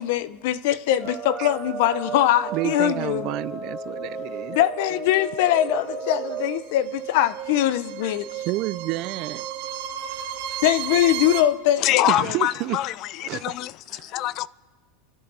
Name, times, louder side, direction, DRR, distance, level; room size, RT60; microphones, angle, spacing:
voice 1, 0.0-3.3 4.5-8.2 10.6-12.1, left 12 dB, 65° left, 0.8 m, -22 dB
sound 1, 1.0-6.6, right 3 dB, 5° right, 3.2 m, -34 dB
voice 2, 2.5-4.6 8.5-9.4 12.1-12.8 13.2-13.6 13.9-14.0, right 19 dB, 45° right, 0.4 m, -29 dB
sound 2, 5.4-11.4, right 10 dB, 60° right, 1.8 m, -33 dB
voice 3, 11.8-14.5, left 15 dB, 45° left, 0.4 m, -25 dB
29.0 x 11.5 x 4.2 m
supercardioid pair, 140°, 0 cm